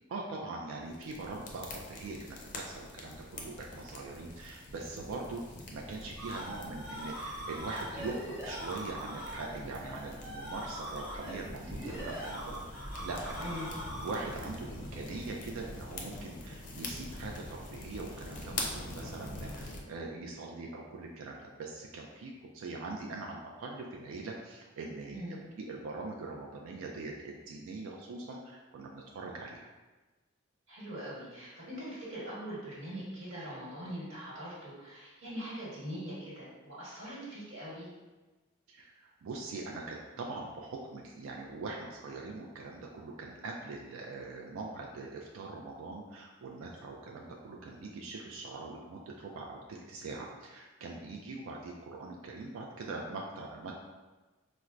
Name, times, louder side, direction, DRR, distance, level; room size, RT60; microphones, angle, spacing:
voice 1, 0.1-13.7 14.0-29.7 38.7-53.7, right 3 dB, 90° right, -1 dB, 0.4 m, -42 dB
sound 1, 0.9-19.8, left 2 dB, 40° left, 0.4 m, -44 dB
sound 2, 6.1-14.4, equal, 5° right, 0.9 m, -42 dB
voice 2, 13.4-13.7 25.1-25.4 30.7-37.9, equal, 75° right, -8 dB, 1.3 m, -42 dB
4.3 x 2.1 x 2.4 m, 1.2 s
head